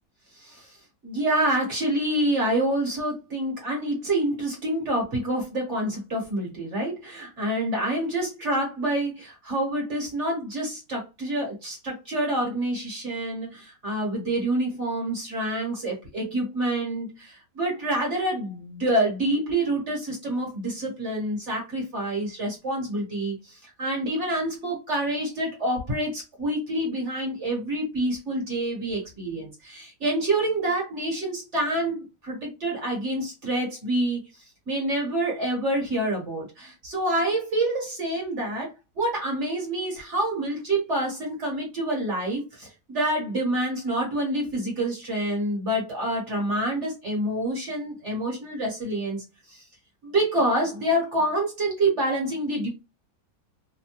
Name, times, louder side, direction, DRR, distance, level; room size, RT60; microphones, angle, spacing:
voice 1, 0.4-0.8 1.0-34.2 34.7-49.6 50.0-52.7, right 1 dB, 45° right, -2 dB, 1.2 m, -27 dB
3.2 x 2.2 x 2.9 m, 0.26 s
omnidirectional pair, 1.9 m